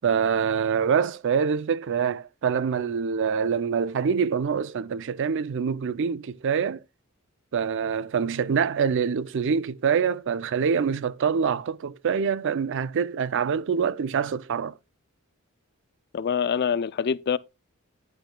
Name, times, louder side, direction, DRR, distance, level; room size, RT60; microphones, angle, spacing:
voice 1, 0.0-6.8 7.5-14.7, right 6 dB, 55° right, 0.4 m, -25 dB
voice 2, 16.1-17.4, left 7 dB, 45° left, 0.4 m, -25 dB
10.5 x 10.0 x 2.2 m
head